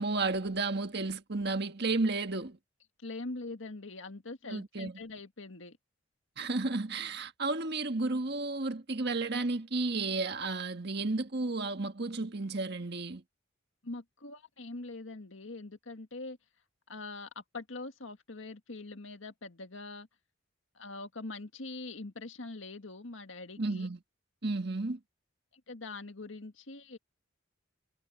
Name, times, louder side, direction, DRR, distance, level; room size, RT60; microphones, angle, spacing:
voice 1, 0.0-2.6 4.5-4.9 6.4-13.2 23.6-24.0 24.4-25.0, right 3 dB, 55° right, 1.6 m, -32 dB
voice 2, 3.0-5.8 13.8-16.4 16.9-20.1 20.8-23.9 25.5-27.0, left 3 dB, 75° left, 1.8 m, -43 dB
head